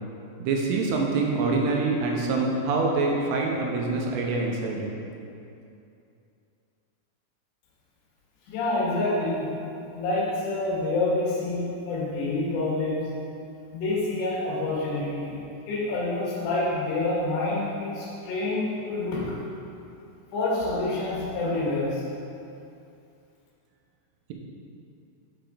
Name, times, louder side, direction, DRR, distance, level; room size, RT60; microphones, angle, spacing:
voice 1, 0.4-4.9, right 3 dB, 90° right, 0 dB, 3.3 m, -25 dB
voice 2, 8.5-9.5 9.9-13.1 13.7-15.4 15.7-19.4 20.3-22.0, left 2 dB, 70° left, -5 dB, 3.6 m, -27 dB
7.7 x 6.9 x 3.7 m, 2.7 s
omnidirectional pair, 5.8 m